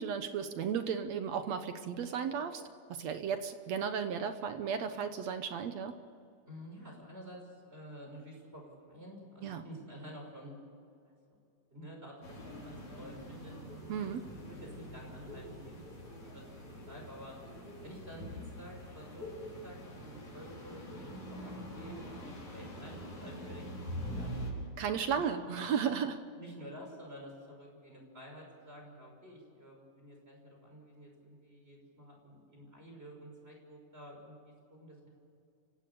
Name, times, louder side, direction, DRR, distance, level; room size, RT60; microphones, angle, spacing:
voice 1, 0.0-2.6 2.9-6.0 9.4-9.6 13.9-14.3 24.8-26.2, right 7 dB, 65° right, 8 dB, 2.0 m, -34 dB
voice 2, 6.5-10.6 11.3-11.4 11.7-13.6 14.0-14.1 14.5-15.9 16.2-17.4 17.8-24.7 26.3-35.1, equal, 15° right, 0 dB, 5.9 m, -51 dB
sound 1, 12.2-24.5, equal, 60° left, 6.6 m, -44 dB
29.5 x 16.5 x 7.0 m, 2.4 s
omnidirectional pair, 3.6 m